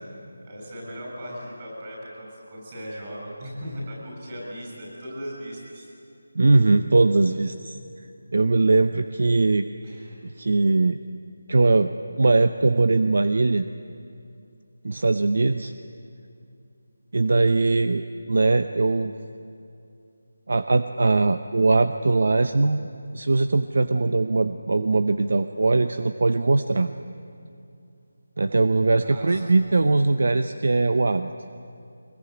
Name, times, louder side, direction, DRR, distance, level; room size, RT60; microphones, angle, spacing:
voice 1, 0.5-5.9 9.8-10.2 29.0-29.5, equal, 20° right, -3 dB, 7.0 m, -38 dB
voice 2, 6.3-7.8 8.3-9.7 10.2-11.0 11.5-11.9 12.2-13.7 14.8-15.7 17.1-19.1 20.5-22.9 23.1-26.9 28.4-31.3, right 3 dB, 50° right, 9 dB, 0.8 m, -21 dB
24.5 x 21.0 x 9.6 m, 2.6 s
figure-of-eight pair, 180°, 0 cm